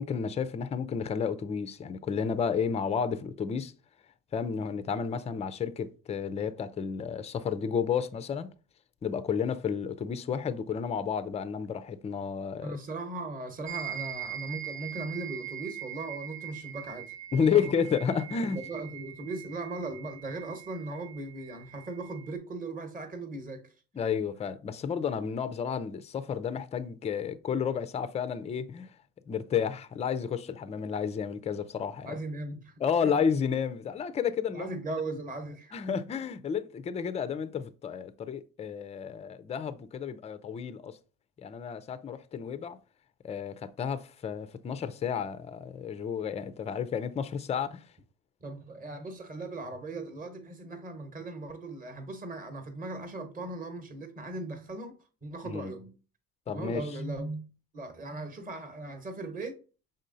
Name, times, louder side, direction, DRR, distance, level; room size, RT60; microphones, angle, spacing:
voice 1, 0.0-3.7 4.3-8.5 9.0-12.8 17.3-18.6 23.9-28.9 29.3-32.2 32.8-34.8 35.7-41.0 41.4-42.8 43.2-47.9 55.4-55.7 56.5-56.9, left 7 dB, 15° left, 0.3 m, -31 dB
voice 2, 12.6-17.7 18.5-23.6 32.0-32.7 33.0-33.1 34.5-35.9 48.4-55.9 56.5-57.5 57.7-59.6, right 2 dB, 20° right, 1.0 m, -38 dB
sound 1, 13.7-22.3, right 11 dB, 55° right, 0.9 m, -42 dB
5.3 x 3.8 x 2.6 m
supercardioid pair, 75°, 41 cm